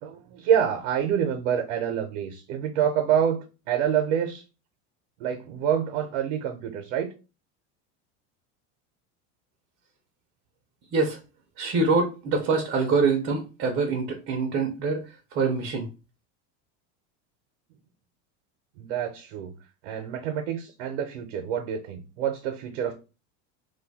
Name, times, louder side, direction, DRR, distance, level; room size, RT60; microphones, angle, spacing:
voice 1, 0.0-4.4 5.2-7.1 18.8-19.5 19.8-22.9, right 8 dB, 85° right, 5 dB, 0.6 m, -27 dB
voice 2, 11.6-15.0 15.3-15.9, right 4 dB, 30° right, 3 dB, 0.4 m, -25 dB
2.5 x 2.3 x 3.9 m, 0.31 s
cardioid pair, 170°, 36 cm